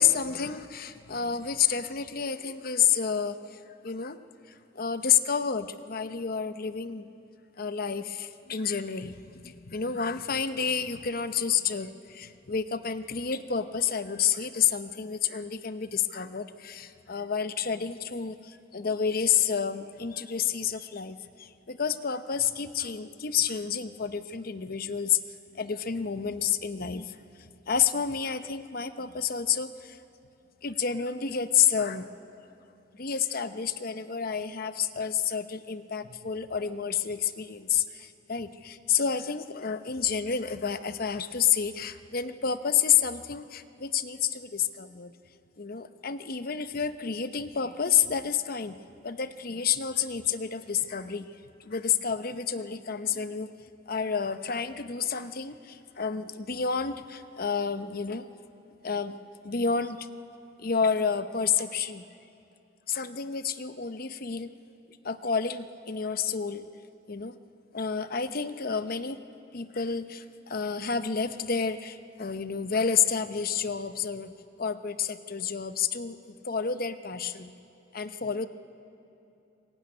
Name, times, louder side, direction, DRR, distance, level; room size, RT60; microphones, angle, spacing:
voice 1, 0.0-4.2 4.5-7.1 7.6-25.2 25.5-30.0 30.6-32.1 32.9-45.1 45.6-48.8 49.0-51.3 51.6-53.5 53.9-58.3 58.8-59.2 59.4-60.1 60.6-62.0 62.9-64.5 65.0-66.7 67.1-67.4 67.7-69.2 69.5-77.5 77.9-78.5, left 7 dB, 50° left, 11 dB, 0.8 m, -29 dB
22.5 x 20.5 x 9.6 m, 2.8 s
head